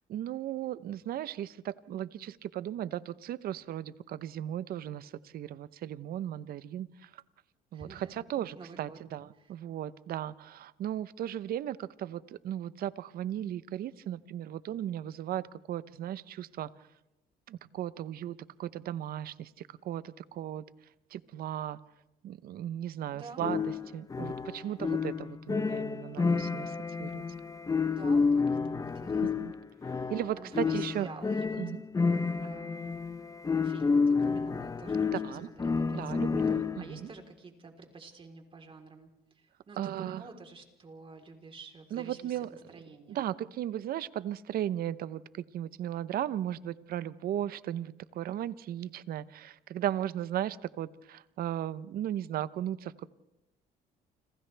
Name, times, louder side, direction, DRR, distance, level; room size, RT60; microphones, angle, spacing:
voice 1, 0.1-7.2 7.7-16.7 17.5-20.6 21.1-21.8 22.2-27.2 29.2-29.5 30.1-31.1 31.6-31.8 35.1-35.5 35.9-37.1 39.8-40.2 41.9-42.5 43.1-53.1, right 11 dB, 60° right, 16 dB, 0.8 m, -36 dB
voice 2, 7.7-8.3 8.5-9.0 9.3-9.5 23.1-23.5 24.6-25.0 27.9-29.5 29.8-31.6 32.4-33.1 33.6-36.3 36.8-43.2, right 4 dB, 30° right, 3 dB, 3.8 m, -50 dB
sound 1, 23.4-37.0, left 4 dB, 20° left, 0.9 m, -30 dB
29.5 x 26.5 x 3.4 m, 0.95 s
cardioid pair, 110°, 17 cm